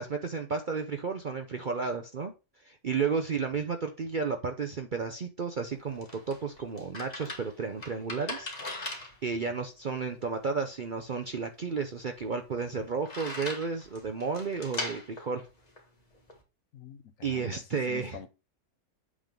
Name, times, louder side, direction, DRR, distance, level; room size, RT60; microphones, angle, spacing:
voice 1, 0.0-2.3 2.6-9.0 9.2-15.5 17.2-18.2, right 5 dB, 50° right, 0.6 m, -32 dB
sound 1, 5.5-16.4, left 2 dB, 30° left, 1.5 m, -42 dB
voice 2, 16.7-18.3, left 9 dB, 65° left, 1.0 m, -46 dB
8.2 x 3.7 x 5.2 m
omnidirectional pair, 1.6 m